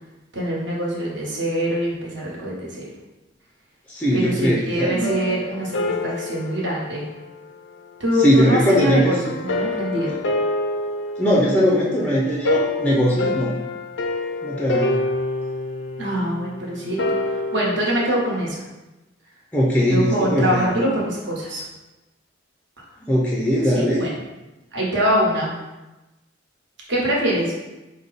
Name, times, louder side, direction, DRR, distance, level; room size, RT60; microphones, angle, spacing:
voice 1, 0.3-2.9 4.1-7.1 8.0-10.2 16.0-17.0 17.5-18.6 19.9-21.6 23.6-24.1 24.7-25.5 26.9-27.5, equal, 65° right, -4 dB, 1.1 m, -24 dB
voice 2, 3.9-5.1 8.2-9.1 11.2-13.5 14.4-15.0 19.5-20.9 23.0-24.0, equal, 5° left, -4 dB, 0.4 m, -20 dB
sound 1, 5.0-7.9 9.2-18.5, left 2 dB, 70° left, 0.4 m, -27 dB
4.8 x 2.2 x 4.0 m, 1.0 s
head